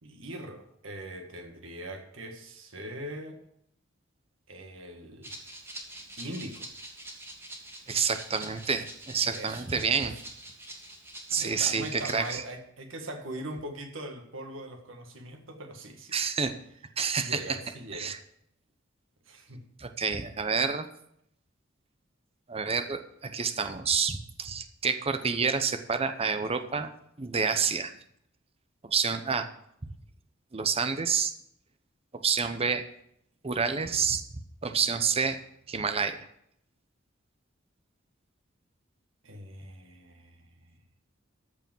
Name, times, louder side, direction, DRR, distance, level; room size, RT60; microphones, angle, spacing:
voice 1, 0.0-3.4 4.5-5.4 6.2-6.7 9.1-9.6 9.9-10.2 11.3-16.1 17.0-18.2 19.2-19.6 39.2-40.6, right 1 dB, 80° right, 4 dB, 1.7 m, -41 dB
Rattle (instrument), 5.2-12.4, right 1 dB, 10° right, 2.1 m, -45 dB
voice 2, 7.9-10.1 11.3-12.4 16.1-16.5 17.0-17.4 17.9-18.2 19.8-20.9 22.5-26.9 27.2-27.9 28.8-29.5 29.8-29.9 30.5-31.3 32.2-32.8 33.4-34.2 34.6-35.4 35.7-36.2, right 5 dB, 30° right, 8 dB, 0.8 m, -28 dB
14.0 x 4.9 x 7.6 m, 0.73 s
head